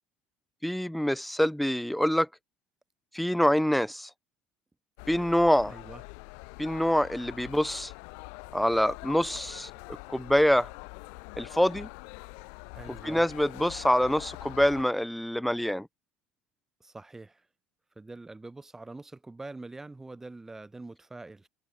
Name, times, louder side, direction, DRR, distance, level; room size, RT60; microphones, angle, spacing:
voice 1, 0.6-2.3 3.1-4.1 5.1-5.7 6.6-7.9 8.5-9.7 10.1-10.7 11.4-11.9 13.0-15.9, equal, ahead, 0.4 m, -25 dB
sound 1, 5.0-14.8, left 40 dB or more, 85° left, 2.0 m, -44 dB
voice 2, 5.7-6.0 12.7-13.3 16.8-17.5 17.9-21.5, right 2 dB, 15° right, 3.5 m, -44 dB
supercardioid pair, 100°, 3 cm